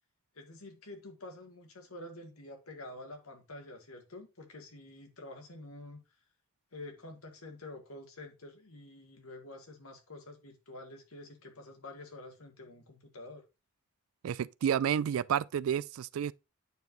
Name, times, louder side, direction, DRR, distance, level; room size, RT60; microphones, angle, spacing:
voice 1, 0.4-6.0 6.7-13.4, left 2 dB, 80° left, 1.8 m, -48 dB
voice 2, 14.2-16.3, right 8 dB, 70° right, 0.3 m, -30 dB
9.0 x 4.7 x 3.0 m
head